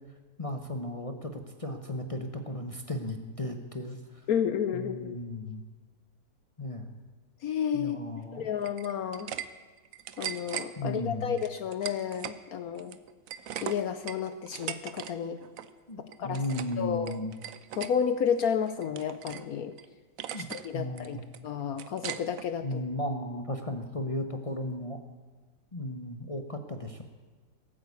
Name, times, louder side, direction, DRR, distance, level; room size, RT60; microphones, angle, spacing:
voice 1, 0.4-4.0 4.7-5.6 6.6-6.9 7.7-8.5 10.8-11.4 15.9-17.4 20.3-20.5 20.7-21.2 22.6-25.0 25.7-27.0, left 1 dB, 25° left, 4 dB, 0.8 m, -35 dB
voice 2, 4.3-5.2 7.4-8.0 8.3-9.3 10.2-13.0 13.6-15.4 16.2-16.4 16.8-17.2 17.7-19.7 20.4-22.8, left 8 dB, 65° left, 10 dB, 1.1 m, -31 dB
sound 1, 8.6-9.5 9.8-10.7 11.4-12.4 12.7-15.1 15.4-15.7 16.1-16.8 17.1-17.9 18.4-19.5 19.8-19.9 20.2-20.7 21.0-22.5, right 10 dB, 60° right, 1.0 m, -39 dB
18.0 x 8.8 x 8.4 m, 1.3 s
omnidirectional pair, 1.8 m